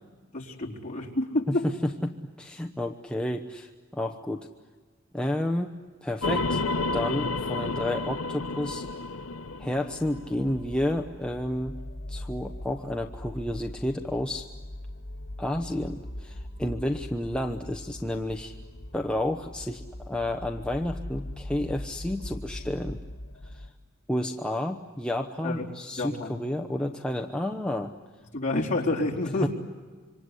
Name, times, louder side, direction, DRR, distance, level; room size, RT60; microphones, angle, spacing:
voice 1, 0.3-1.7 25.4-25.7 26.0-26.4 28.3-29.5, left 2 dB, 40° left, -2 dB, 4.0 m, -28 dB
voice 2, 1.6-4.5 5.1-5.7 6.0-6.6 6.9-8.9 9.6-11.8 12.1-14.5 15.4-18.5 18.9-23.0 23.4-23.7 24.1-27.9 29.4-29.5, left 1 dB, 5° left, 2 dB, 0.9 m, -31 dB
sound 1, 6.2-10.6, left 3 dB, 85° left, 0.8 m, -30 dB
sound 2, 9.0-23.7, left 1 dB, 70° left, 2.4 m, -41 dB
27.0 x 25.0 x 8.2 m, 1.5 s
head